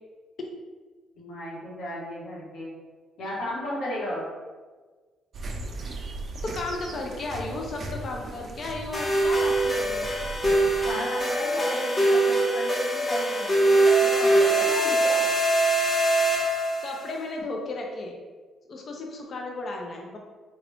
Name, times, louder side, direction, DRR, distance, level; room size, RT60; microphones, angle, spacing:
voice 1, 1.2-2.7 3.2-4.3 10.8-15.2, left 1 dB, 90° left, -7 dB, 1.3 m, -34 dB
sound 1, 5.3-10.9, right 2 dB, 50° right, 0.5 m, -38 dB
voice 2, 6.4-10.1 16.8-18.2 18.7-20.2, left 2 dB, 50° left, 1 dB, 0.6 m, -34 dB
sound 2, 8.9-17.0, right 2 dB, 25° left, 1.0 m, -23 dB
3.8 x 2.3 x 3.4 m, 1.4 s
cardioid pair, 90°, 0 cm